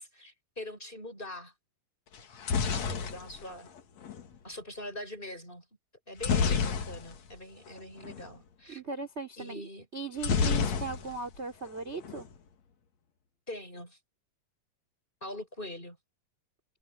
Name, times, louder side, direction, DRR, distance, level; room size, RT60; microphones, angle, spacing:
voice 1, 0.0-1.5 2.7-3.7 4.4-5.6 6.1-8.8 9.4-9.9 13.5-14.0 15.2-16.0, left 1 dB, 10° left, 6.4 m, -43 dB
sound 1, 2.1-4.3 6.2-7.4 7.7-7.8 8.0-8.3 10.2-11.4 11.7-12.3, left 5 dB, 50° left, 2.8 m, -29 dB
voice 2, 8.7-12.3, right 4 dB, 15° right, 3.5 m, -38 dB
omnidirectional pair, 4.6 m